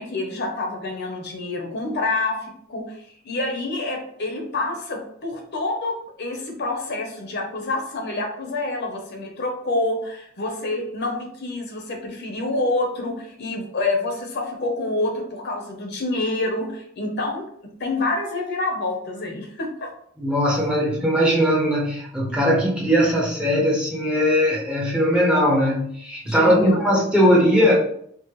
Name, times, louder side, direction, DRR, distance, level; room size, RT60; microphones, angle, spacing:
voice 1, 0.0-17.4 17.8-19.9 26.2-26.8, left 2 dB, 50° left, 2 dB, 0.8 m, -27 dB
voice 2, 20.2-27.8, equal, 5° right, -4 dB, 0.6 m, -19 dB
4.6 x 2.1 x 3.1 m, 0.66 s
head